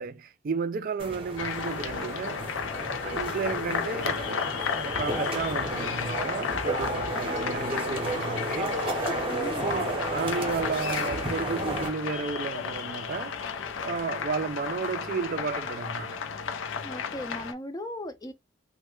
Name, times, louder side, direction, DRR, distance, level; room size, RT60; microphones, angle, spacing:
voice 1, 0.0-2.4 3.0-4.5 4.8-8.8 9.6-13.3 13.8-16.2, right 5 dB, 45° right, 0.3 m, -33 dB
sound 1, 1.0-11.9, right 1 dB, 25° right, 0.8 m, -33 dB
sound 2, 1.4-17.5, left 6 dB, 75° left, 0.5 m, -33 dB
voice 2, 9.3-9.7 16.8-18.3, left 1 dB, 20° left, 0.5 m, -37 dB
3.2 x 2.2 x 3.0 m
head